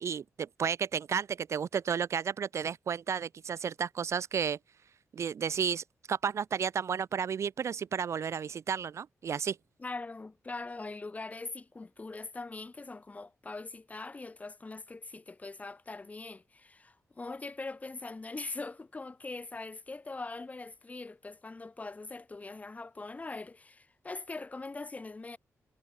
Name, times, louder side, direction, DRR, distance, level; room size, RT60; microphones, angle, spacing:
voice 1, 0.0-4.6 5.1-9.6, right 7 dB, 55° right, 0.4 m, -32 dB
voice 2, 9.8-25.4, left 3 dB, 25° left, 2.6 m, -42 dB
wide cardioid pair, 125°, 6 cm